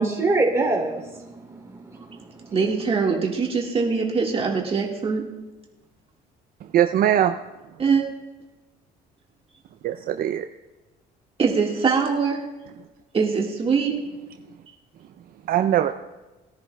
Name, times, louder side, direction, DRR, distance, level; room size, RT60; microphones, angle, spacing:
voice 1, 0.0-2.6, right 2 dB, 15° right, 0 dB, 3.0 m, -25 dB
voice 2, 2.5-5.2 7.8-8.0 11.4-12.5 13.1-13.9, right 5 dB, 35° right, -1 dB, 1.7 m, -22 dB
voice 3, 6.7-7.3 9.8-10.5 15.5-15.9, right 11 dB, 60° right, 7 dB, 0.5 m, -20 dB
20.0 x 10.0 x 2.3 m, 1.1 s
cardioid pair, 110°, 17 cm